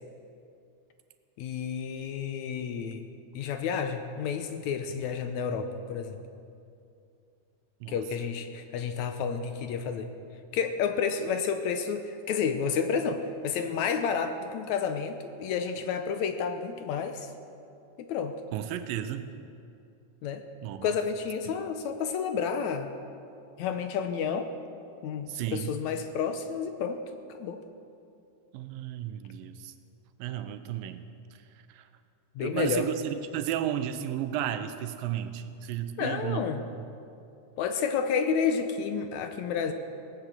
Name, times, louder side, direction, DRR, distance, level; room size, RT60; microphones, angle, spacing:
voice 1, 1.4-3.1 3.4-6.2 7.9-10.1 10.5-17.3 18.0-18.3 20.2-20.4 20.8-22.9 23.6-24.5 25.0-27.0 27.3-27.6 32.4-32.9 36.0-36.6 37.6-39.7, left 6 dB, 75° left, 8 dB, 1.8 m, -30 dB
voice 2, 18.5-19.3 20.6-20.9 21.4-21.5 25.3-25.7 28.5-29.7 30.2-31.0 31.7-31.9 32.4-36.5, right 11 dB, 85° right, 10 dB, 2.5 m, -33 dB
18.5 x 8.7 x 7.9 m, 2.5 s
omnidirectional pair, 4.0 m